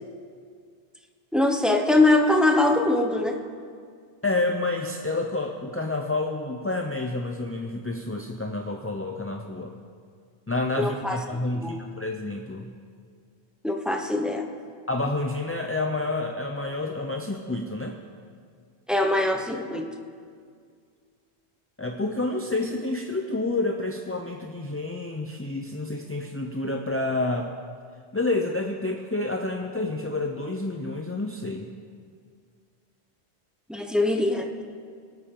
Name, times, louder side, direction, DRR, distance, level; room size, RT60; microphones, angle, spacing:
voice 1, 1.3-3.3 10.8-11.2 11.5-11.7 13.6-14.4 18.9-19.9 33.7-34.6, left 2 dB, ahead, 3 dB, 0.8 m, -22 dB
voice 2, 4.2-9.7 10.5-12.7 14.9-18.0 21.8-27.5 28.1-31.7, left 2 dB, 20° left, 2 dB, 0.4 m, -29 dB
22.5 x 8.6 x 3.8 m, 2.1 s
omnidirectional pair, 1.1 m